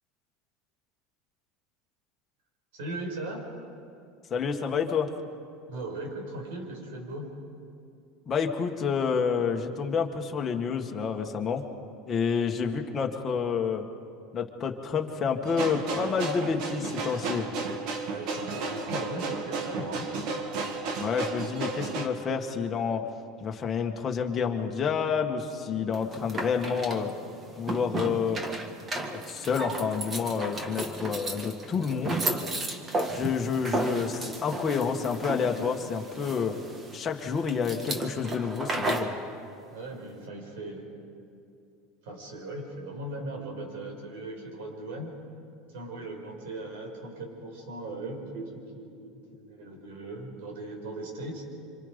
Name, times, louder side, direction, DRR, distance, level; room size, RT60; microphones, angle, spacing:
voice 1, 2.7-3.4 5.7-7.3 18.0-20.1 39.7-40.9 42.0-45.1 45.7-51.4, right 2 dB, 85° right, 2 dB, 5.9 m, -38 dB
voice 2, 4.3-5.1 8.3-11.6 12.1-13.9 14.3-17.5 21.0-23.1 23.4-27.1 27.6-28.4 29.3-32.2 33.1-36.6 36.9-39.1, left 6 dB, 25° left, 2 dB, 1.9 m, -29 dB
sound 1, 15.4-22.1, right 3 dB, 55° right, 2.2 m, -33 dB
sound 2, 25.9-39.2, right 2 dB, 20° right, 1.7 m, -34 dB
26.5 x 26.5 x 5.4 m, 2.5 s
supercardioid pair, 145°, 0 cm